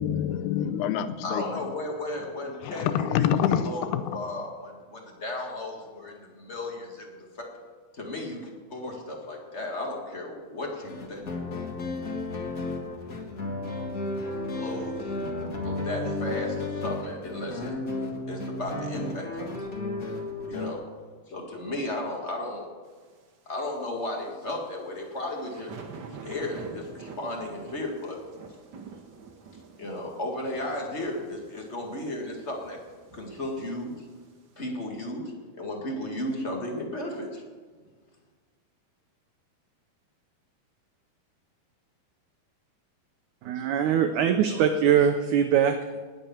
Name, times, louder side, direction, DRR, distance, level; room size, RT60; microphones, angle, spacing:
voice 1, 0.0-1.4 2.6-4.3, left 9 dB, 85° left, 12 dB, 2.8 m, -26 dB
voice 2, 1.2-7.5 7.9-8.4 8.7-11.2 14.6-15.1 15.6-19.5 20.4-20.8 21.3-22.7 23.4-25.8 26.2-28.2 29.8-32.8 33.1-34.0 34.6-37.4, left 1 dB, 40° left, 0 dB, 0.9 m, -34 dB
sound 1, 10.8-20.7, left 2 dB, 70° left, 0.8 m, -33 dB
sound 2, 24.8-34.4, right 5 dB, 70° right, 1.1 m, -46 dB
voice 3, 43.4-46.0, right 8 dB, 85° right, 6 dB, 1.7 m, -22 dB
19.5 x 7.0 x 7.2 m, 1.5 s
omnidirectional pair, 4.5 m